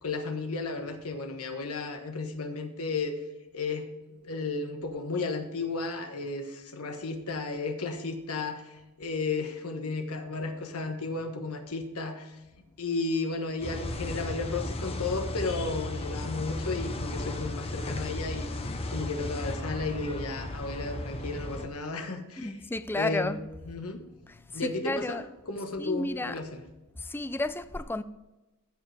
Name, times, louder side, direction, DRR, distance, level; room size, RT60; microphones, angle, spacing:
voice 1, 0.0-3.2 3.5-3.9 4.2-12.4 12.8-22.5 22.9-23.4 23.7-24.0 24.5-25.2 25.5-26.6, left 3 dB, 75° left, 1.3 m, -33 dB
sound 1, 13.6-21.7, left 1 dB, 25° left, 0.8 m, -35 dB
voice 2, 22.4-23.4 24.3-25.2 25.8-26.4 27.0-28.0, left 2 dB, 10° left, 0.4 m, -32 dB
15.0 x 5.2 x 3.4 m
head